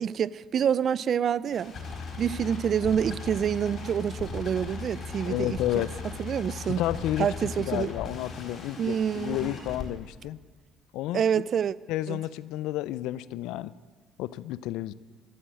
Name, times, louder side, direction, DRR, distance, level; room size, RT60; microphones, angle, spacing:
voice 1, 0.0-1.8 2.2-5.9 6.2-6.8 7.2-7.9 8.8-9.5 11.1-11.8 12.1-12.2, right 8 dB, 55° right, 0.4 m, -27 dB
sound 1, 1.5-9.8, left 4 dB, 55° left, 4.5 m, -38 dB
voice 2, 5.3-5.9 6.8-7.3 7.6-10.4 10.9-11.2 11.9-13.7 14.2-14.9, left 14 dB, 80° left, 0.4 m, -31 dB
14.0 x 13.0 x 7.6 m
supercardioid pair, 70°, 0 cm